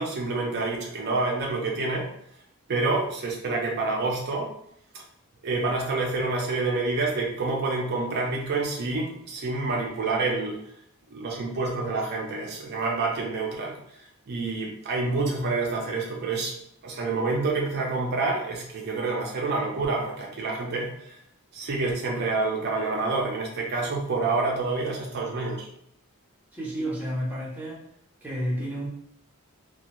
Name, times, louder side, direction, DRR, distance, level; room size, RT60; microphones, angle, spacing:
voice 1, 0.0-2.1 2.7-4.5 4.9-5.0 5.4-10.6 11.1-13.8 14.3-16.5 16.8-21.2 21.5-25.7, right 3 dB, 45° right, -2 dB, 0.4 m, -28 dB
voice 2, 26.5-27.8 28.2-28.9, equal, 10° right, -5 dB, 0.6 m, -30 dB
2.4 x 2.1 x 2.9 m, 0.72 s
head